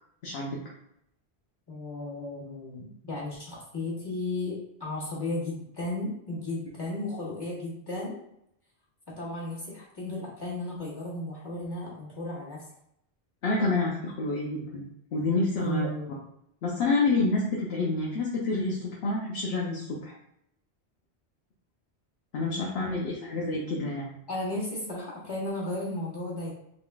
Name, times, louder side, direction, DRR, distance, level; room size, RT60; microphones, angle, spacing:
voice 1, 0.2-0.6 13.4-15.9 16.6-20.1 22.3-24.0, left 3 dB, 70° left, -4 dB, 1.0 m, -28 dB
voice 2, 1.7-8.2 9.1-12.6 15.6-16.1 24.3-26.5, left 2 dB, 20° left, -7 dB, 1.4 m, -34 dB
3.8 x 3.6 x 2.3 m, 0.75 s
omnidirectional pair, 1.1 m